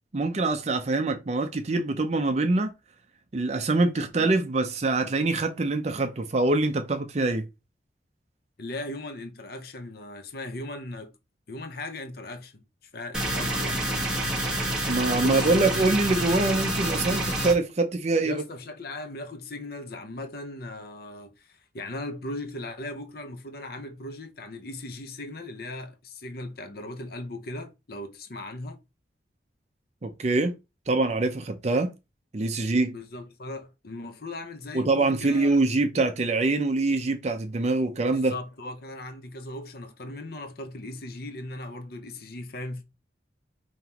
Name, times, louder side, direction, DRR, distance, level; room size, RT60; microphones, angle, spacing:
voice 1, 0.1-2.7 3.3-7.4 14.9-18.4 30.0-30.5 30.9-31.9 32.3-32.9 34.7-38.3, right 2 dB, 40° right, 0.5 m, -24 dB
voice 2, 8.6-11.1 11.5-13.8 15.2-15.5 18.2-28.8 32.5-35.6 38.0-42.8, left 1 dB, 55° left, 0.7 m, -38 dB
sound 1, 13.1-17.5, right 1 dB, 5° right, 1.1 m, -28 dB
5.3 x 3.0 x 2.9 m
head